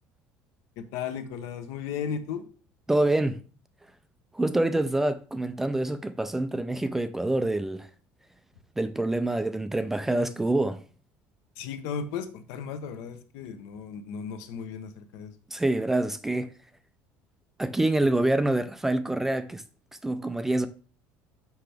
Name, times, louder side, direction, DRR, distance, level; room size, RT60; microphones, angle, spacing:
voice 1, 0.8-2.5 11.6-15.3, left 7 dB, 80° left, 0.9 m, -35 dB
voice 2, 2.9-3.4 4.3-7.9 8.8-10.8 15.5-16.5 17.6-19.6 20.0-20.7, right 2 dB, 5° right, 0.3 m, -26 dB
5.8 x 5.8 x 3.4 m
cardioid pair, 165°, 5 cm